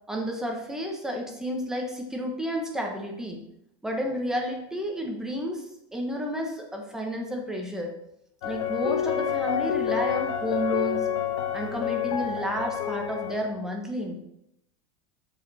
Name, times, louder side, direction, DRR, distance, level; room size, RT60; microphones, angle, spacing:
voice 1, 0.1-3.4 3.8-5.7 5.9-7.9 8.4-11.1 11.5-14.2, equal, 5° right, 1 dB, 1.2 m, -31 dB
sound 1, 8.4-13.5, left 9 dB, 60° left, 1.5 m, -28 dB
13.0 x 5.1 x 4.3 m, 0.79 s
supercardioid pair, 175°, 16 cm